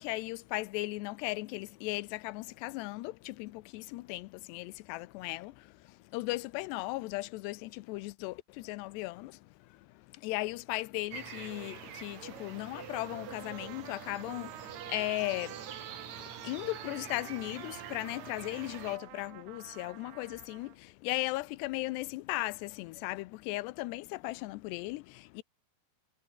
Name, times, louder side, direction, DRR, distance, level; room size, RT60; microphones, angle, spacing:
voice 1, 0.0-25.4, left 20 dB, 90° left, 2.9 m, -37 dB
sound 1, 11.1-19.0, right 8 dB, 50° right, 3.4 m, -46 dB
Trumpet, 12.9-20.8, right 19 dB, 80° right, 2.6 m, -49 dB
omnidirectional pair, 4.8 m